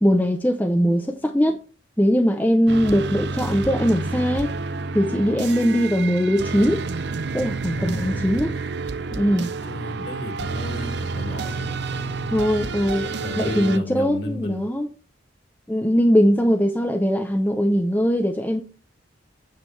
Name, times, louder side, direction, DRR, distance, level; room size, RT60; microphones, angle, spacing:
voice 1, 0.0-1.6 2.0-4.5 4.9-6.8 7.3-8.5 9.2-9.5 12.3-13.1 13.4-14.9 15.7-18.6, equal, 10° left, 0.6 m, -20 dB
sound 1, 2.7-13.8, right 4 dB, 60° right, 0.7 m, -29 dB
voice 2, 7.7-8.5 9.4-12.3 13.0-14.7, left 2 dB, 60° left, 2.4 m, -34 dB
9.0 x 7.4 x 3.3 m
head